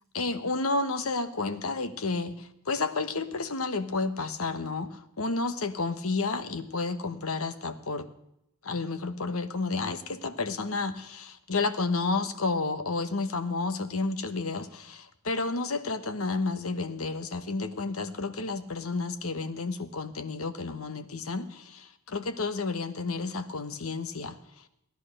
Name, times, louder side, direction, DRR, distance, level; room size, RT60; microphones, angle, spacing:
voice 1, 0.1-8.1 8.6-24.4, left 3 dB, 80° left, 10 dB, 1.2 m, -31 dB
17.0 x 11.0 x 6.6 m, 0.79 s
head